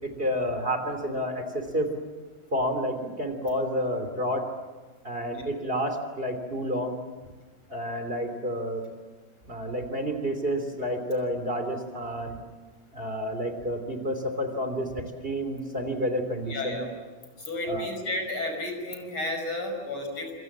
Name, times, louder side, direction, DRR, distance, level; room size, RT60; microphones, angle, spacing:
voice 1, 0.0-2.0 2.5-4.5 5.0-7.0 7.7-8.8 9.4-12.4 12.9-16.9 17.7-17.9, equal, 25° right, 6 dB, 3.3 m, -30 dB
voice 2, 16.5-16.9 17.4-20.3, left 2 dB, 90° left, 4 dB, 6.7 m, -32 dB
27.5 x 27.5 x 7.4 m, 1.3 s
omnidirectional pair, 2.3 m